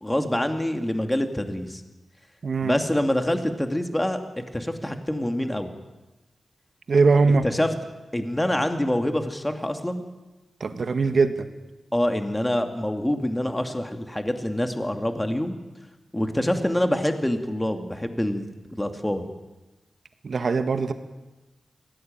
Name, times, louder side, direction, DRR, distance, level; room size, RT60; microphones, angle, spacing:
voice 1, 0.0-1.8 2.6-5.7 7.4-7.7 8.1-10.0 11.9-15.6 16.1-18.5 18.8-19.3, left 1 dB, 10° left, 6 dB, 2.5 m, -26 dB
voice 2, 2.4-2.8 6.9-7.4 10.6-11.5 20.2-20.9, right 4 dB, 65° right, 9 dB, 1.7 m, -21 dB
22.0 x 17.5 x 9.1 m, 1.1 s
cardioid pair, 65°, 0 cm